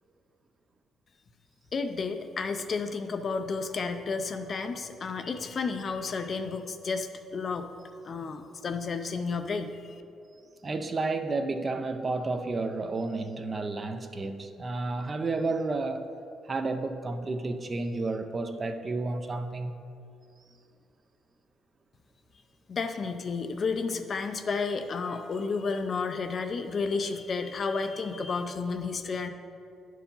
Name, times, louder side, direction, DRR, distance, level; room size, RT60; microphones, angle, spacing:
voice 1, 1.7-7.7 8.0-10.0 22.7-29.3, left 4 dB, 40° left, 7 dB, 0.5 m, -32 dB
voice 2, 10.6-16.1 16.5-19.7, right 3 dB, 30° right, 8 dB, 0.5 m, -31 dB
10.0 x 4.7 x 5.4 m, 2.5 s
cardioid pair, 120°, 0 cm